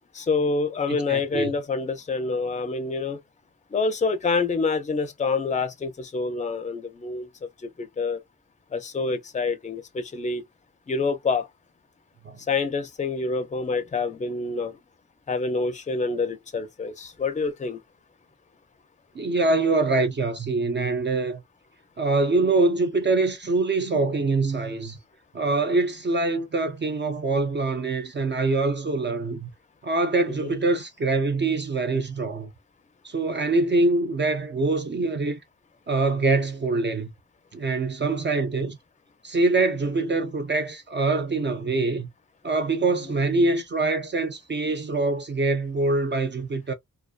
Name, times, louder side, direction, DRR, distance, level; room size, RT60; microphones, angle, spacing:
voice 1, 0.1-3.2 3.7-7.3 7.6-8.2 8.7-10.4 10.9-11.5 12.5-14.8 15.3-17.8 30.3-30.5, left 4 dB, 25° left, 0.4 m, -27 dB
voice 2, 1.1-1.5 12.2-12.4 19.2-21.4 22.0-25.0 25.3-29.5 29.8-32.5 33.0-35.4 35.9-37.1 37.5-38.8 39.2-42.1 42.4-46.7, right 3 dB, 40° right, 0.4 m, -24 dB
2.5 x 2.3 x 2.3 m
wide cardioid pair, 175°, 30 cm